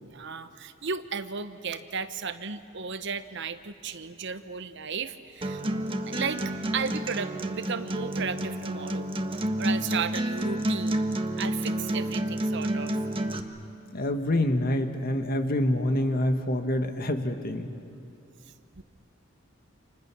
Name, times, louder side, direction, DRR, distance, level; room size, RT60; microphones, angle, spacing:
voice 1, 0.0-5.6 6.1-6.4 6.7-9.1 9.6-11.1 11.4-13.0 18.8-18.9, right 5 dB, 65° right, 11 dB, 1.0 m, -34 dB
Acoustic guitar, 5.4-13.4, right 1 dB, 25° right, 1.3 m, -29 dB
voice 2, 13.9-17.8, left 1 dB, 50° left, 6 dB, 1.7 m, -26 dB
29.5 x 27.5 x 6.2 m, 2.7 s
head